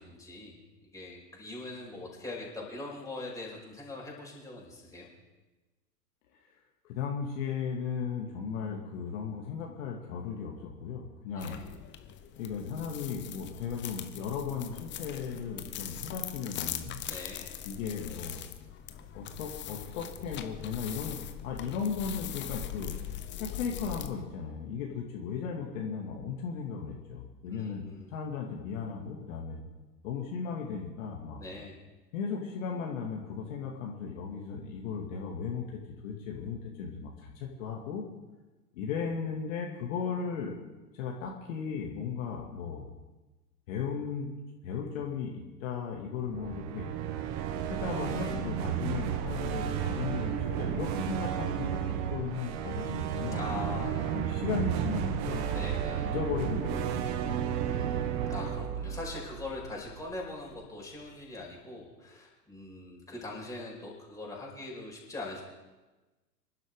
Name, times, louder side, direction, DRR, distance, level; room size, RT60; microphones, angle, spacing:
voice 1, 0.0-5.1 11.3-11.7 17.1-17.5 27.4-28.1 31.4-31.8 53.3-54.2 55.5-56.1 57.6-65.4, left 2 dB, 5° left, -3 dB, 5.2 m, -42 dB
voice 2, 6.8-11.6 12.4-17.0 17.6-18.4 19.1-21.2 21.4-23.0 23.4-27.8 28.1-29.6 30.0-31.4 32.1-38.0 38.7-40.5 40.9-42.8 43.7-46.9 47.5-53.4 53.7-55.5 56.0-57.9, left 6 dB, 55° left, -1 dB, 2.4 m, -36 dB
sound 1, 11.4-24.1, left 10 dB, 25° left, 1.0 m, -41 dB
sound 2, 46.2-60.2, right 9 dB, 35° right, 1.2 m, -33 dB
26.0 x 11.5 x 3.8 m, 1.2 s
figure-of-eight pair, 105°, 48 cm